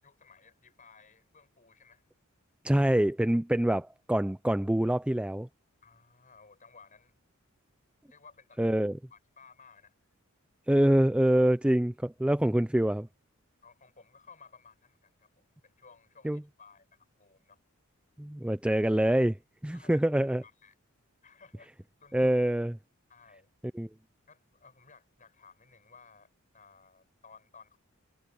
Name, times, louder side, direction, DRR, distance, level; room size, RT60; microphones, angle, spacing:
voice 1, 0.0-2.1 5.8-7.2 8.0-8.6 9.1-9.9 13.6-17.6 19.7-20.8 21.2-21.7 22.0-22.4 23.1-23.5 24.3-27.8, left 5 dB, 35° left, 6.0 m, -57 dB
voice 2, 2.6-5.5 8.6-8.9 10.7-13.1 16.2-16.4 18.2-19.4 19.6-20.4 22.1-22.7 23.7-23.9, right 1 dB, 5° right, 0.3 m, -25 dB
head